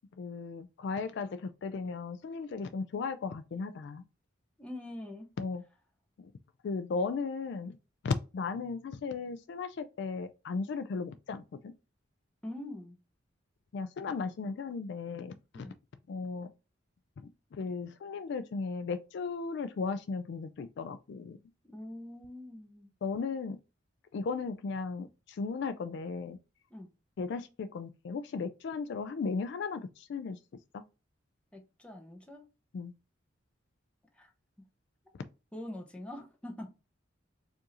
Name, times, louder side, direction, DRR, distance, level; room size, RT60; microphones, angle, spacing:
voice 1, 0.2-4.0 5.4-5.6 6.6-7.8 8.0-11.7 13.7-15.7 16.1-16.5 17.5-21.4 23.0-23.6 24.1-26.4 27.2-30.4 30.7-30.8 32.7-32.9, left 4 dB, 60° left, 0.3 m, -36 dB
voice 2, 4.6-5.3 12.4-13.0 15.5-15.7 21.6-22.9 26.7-26.9 31.5-32.5 34.1-34.3 34.6-34.7 35.5-36.7, left 1 dB, 5° left, 0.8 m, -44 dB
4.6 x 2.6 x 2.9 m
head